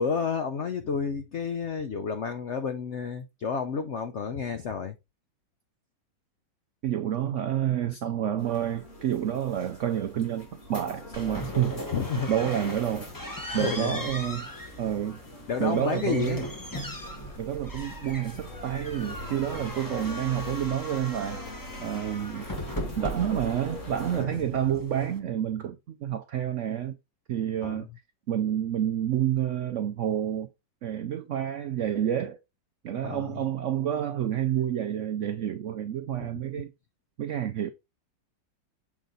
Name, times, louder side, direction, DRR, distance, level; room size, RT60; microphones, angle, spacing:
voice 1, 0.0-5.0 11.9-12.5 13.5-14.1 15.5-16.5 19.5-19.6 24.2-24.8 27.6-27.9 33.0-33.3 36.2-36.3, left 6 dB, 80° left, 0.6 m, -31 dB
voice 2, 6.8-11.7 12.3-13.1 13.5-14.5 14.8-15.2 15.6-16.5 17.4-21.5 21.8-22.5 23.0-27.0 27.3-27.9 28.3-30.5 30.8-32.4 32.8-36.7 37.2-37.7, right 10 dB, 80° right, 0.6 m, -29 dB
sound 1, 8.4-24.2, left 1 dB, 40° left, 2.6 m, -44 dB
sound 2, 11.1-25.2, equal, 15° left, 0.8 m, -39 dB
7.2 x 3.9 x 4.0 m
omnidirectional pair, 2.0 m